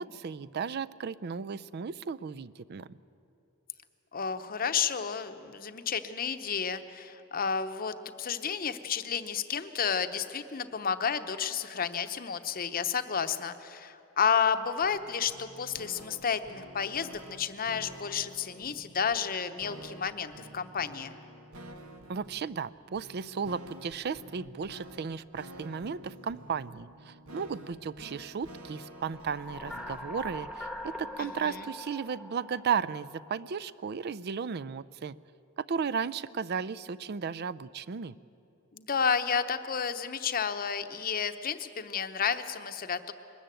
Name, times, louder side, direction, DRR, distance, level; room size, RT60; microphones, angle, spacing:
voice 1, 0.0-2.9 22.1-35.1 35.7-38.1, right 6 dB, 50° right, 19 dB, 0.4 m, -35 dB
voice 2, 4.1-21.2 31.2-31.7 38.7-43.1, left 6 dB, 40° left, 10 dB, 0.8 m, -31 dB
sound 1, 14.8-30.1, right 1 dB, 85° right, 1.4 m, -50 dB
sound 2, 28.9-33.6, left 1 dB, 5° right, 1.1 m, -43 dB
21.5 x 13.5 x 9.0 m, 2.8 s
head